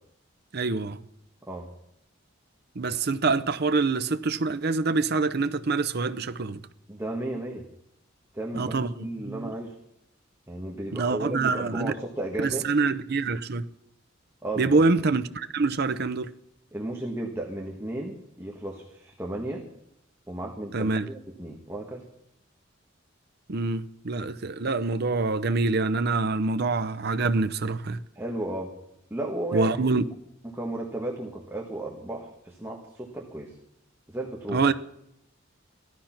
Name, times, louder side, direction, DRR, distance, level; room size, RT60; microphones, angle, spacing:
voice 1, 0.5-1.0 2.8-6.6 8.5-9.5 10.9-11.9 12.4-13.7 14.6-16.3 20.7-21.1 23.5-28.0 29.5-30.1 34.5-34.7, right 3 dB, 55° right, 0.7 m, -25 dB
voice 2, 6.9-7.6 8.3-9.7 10.5-12.7 14.4-14.8 16.7-19.6 20.3-22.0 28.1-28.7 29.1-29.9 30.5-33.5 34.1-34.6, right 1 dB, 15° right, 1.5 m, -34 dB
16.0 x 12.5 x 5.9 m
head